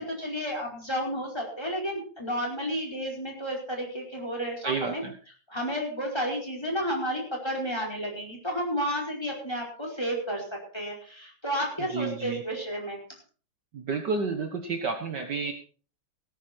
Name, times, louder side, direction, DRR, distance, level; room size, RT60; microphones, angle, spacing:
voice 1, 0.0-5.0 5.5-10.4 10.7-13.0, equal, 10° left, 0 dB, 4.8 m, -31 dB
voice 2, 4.6-5.1 11.9-12.4 13.7-15.5, right 4 dB, 55° right, 5 dB, 1.9 m, -30 dB
18.0 x 10.0 x 4.4 m, 0.40 s
omnidirectional pair, 2.4 m